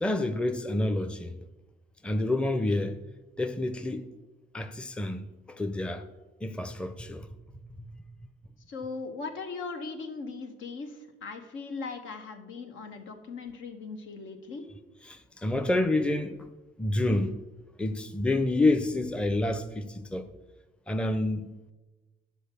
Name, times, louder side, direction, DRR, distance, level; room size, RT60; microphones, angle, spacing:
voice 1, 0.0-1.3 2.0-3.0 3.4-4.1 4.5-6.0 6.4-7.3 7.8-7.9 15.1-16.4 16.8-17.4 17.8-20.3 20.9-21.5, left 2 dB, 5° left, 0.6 m, -28 dB
voice 2, 8.7-14.7, left 4 dB, 75° left, 1.3 m, -39 dB
10.0 x 4.7 x 6.9 m
cardioid pair, 90°, 20 cm